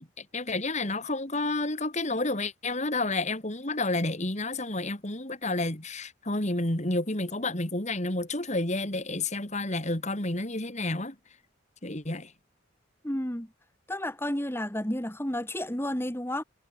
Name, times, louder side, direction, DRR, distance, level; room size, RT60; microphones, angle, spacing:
voice 1, 0.0-11.2 11.8-12.3, left 2 dB, 35° left, 2.8 m, -30 dB
voice 2, 13.0-13.5 13.9-16.4, left 1 dB, 10° left, 2.0 m, -31 dB
head